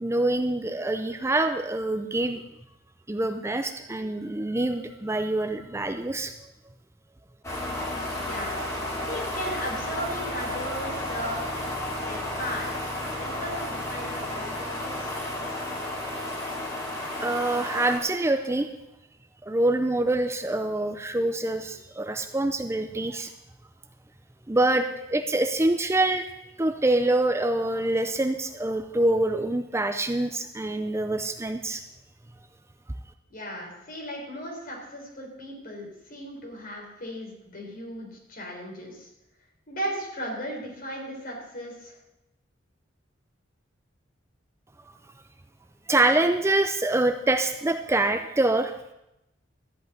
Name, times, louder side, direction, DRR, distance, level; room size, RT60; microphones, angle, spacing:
voice 1, 0.0-2.4 3.1-6.3 17.2-18.7 19.5-23.3 24.5-24.8 25.1-26.2 26.6-31.8 45.9-48.7, right 2 dB, 15° right, 7 dB, 0.5 m, -25 dB
sound 1, 7.4-18.0, left 1 dB, 15° left, 2.9 m, -32 dB
voice 2, 8.2-8.6 9.1-11.5 12.0-12.9 13.2-15.1 33.3-39.1 39.7-42.0, equal, 50° left, -1 dB, 3.9 m, -36 dB
13.5 x 5.5 x 9.3 m, 0.90 s
head